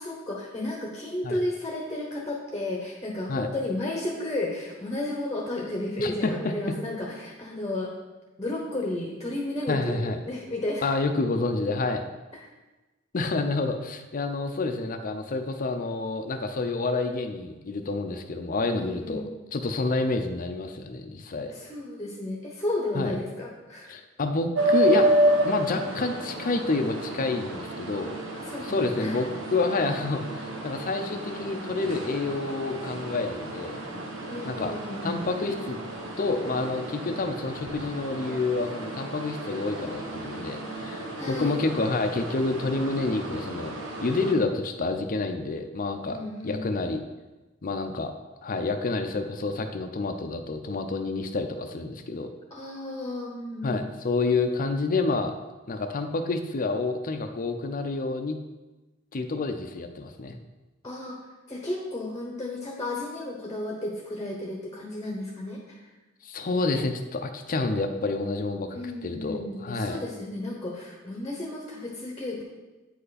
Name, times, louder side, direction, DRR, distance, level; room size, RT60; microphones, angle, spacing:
voice 1, 0.0-7.9 8.4-10.9 18.7-19.3 21.5-23.9 28.5-28.7 29.0-29.2 34.3-35.1 41.2-41.6 46.1-46.7 52.5-53.8 60.8-61.2 61.5-65.8 68.7-72.4, left 1 dB, 20° left, -1 dB, 0.9 m, -33 dB
voice 2, 6.0-6.8 9.7-10.2 10.8-12.0 13.1-19.2 19.5-21.5 22.9-23.1 23.9-25.1 25.4-28.2 28.6-33.8 34.4-34.7 35.0-35.8 36.2-43.7 44.0-46.2 46.4-47.0 47.6-48.1 48.4-52.3 53.6-55.3 55.7-58.4 59.1-60.4 66.2-70.0, left 3 dB, 45° left, 6 dB, 0.6 m, -28 dB
sound 1, 24.5-44.3, right 1 dB, 80° right, 1.3 m, -31 dB
8.8 x 5.5 x 4.1 m, 1.2 s
head